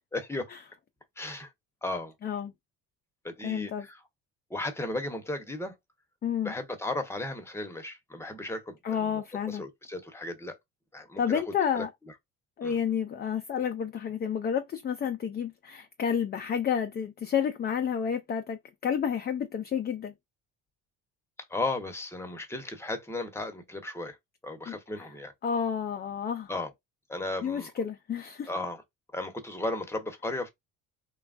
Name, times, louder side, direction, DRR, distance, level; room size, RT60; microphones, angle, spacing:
voice 1, 0.1-0.5 1.2-1.5 1.8-2.1 3.2-4.0 4.5-5.7 6.4-9.2 9.5-10.6 10.9-11.4 11.7-11.8 12.6-12.8 21.5-24.2 24.4-25.3 26.5-26.7 27.1-27.7 28.5-28.8 29.1-30.5, left 2 dB, 5° left, 0.8 m, -35 dB
voice 2, 2.2-2.5 3.4-3.9 6.2-6.5 8.8-9.7 11.2-11.9 12.6-20.1 24.7-25.1 25.4-26.5 27.4-28.5, left 7 dB, 25° left, 0.4 m, -30 dB
3.1 x 2.3 x 2.4 m
supercardioid pair, 80°, 40 cm